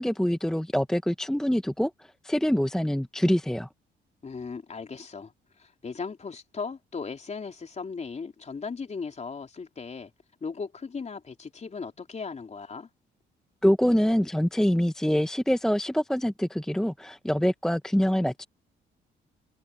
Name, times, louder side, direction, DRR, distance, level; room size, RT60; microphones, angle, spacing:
voice 1, 0.0-3.7 13.6-18.4, equal, 5° left, 0.8 m, -25 dB
voice 2, 4.2-5.3 5.6-10.1 10.4-12.9, left 5 dB, 35° left, 3.5 m, -37 dB
cardioid pair, 90°, 20 cm